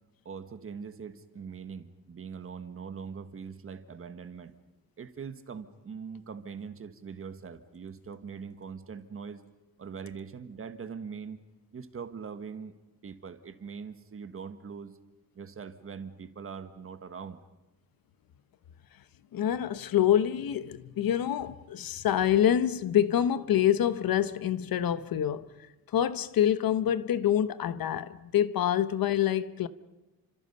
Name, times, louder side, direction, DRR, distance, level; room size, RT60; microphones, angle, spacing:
voice 1, 0.2-4.5 5.0-9.4 9.8-11.4 11.7-12.7 13.0-15.0 15.3-17.4, right 6 dB, 35° right, 1.5 m, -42 dB
voice 2, 19.3-25.5 25.9-29.7, left 10 dB, 70° left, 1.1 m, -26 dB
30.0 x 26.0 x 5.5 m
wide cardioid pair, 175°, 37 cm